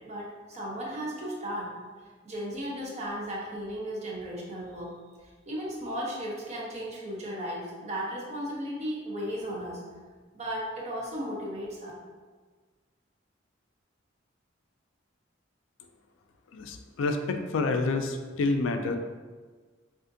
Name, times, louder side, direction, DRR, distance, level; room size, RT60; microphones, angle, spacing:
voice 1, 0.0-1.7 2.2-4.9 5.5-9.8 10.3-11.9, equal, 35° right, -4 dB, 0.7 m, -35 dB
voice 2, 16.5-19.0, left 3 dB, 80° left, 6 dB, 0.3 m, -28 dB
3.5 x 2.5 x 2.6 m, 1.4 s
head